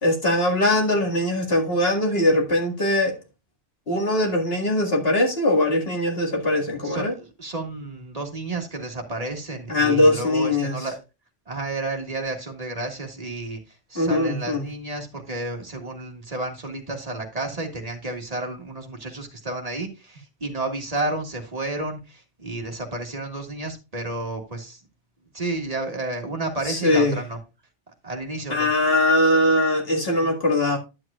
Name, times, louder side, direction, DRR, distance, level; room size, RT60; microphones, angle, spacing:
voice 1, 0.0-3.2 3.9-7.1 9.7-10.8 14.0-14.7 26.6-27.2 28.5-30.8, left 1 dB, 55° left, 2.2 m, -21 dB
voice 2, 6.8-11.0 11.5-24.8 25.3-27.4 28.0-28.7, right 2 dB, 30° right, 1.8 m, -31 dB
11.0 x 7.8 x 2.3 m
omnidirectional pair, 1.2 m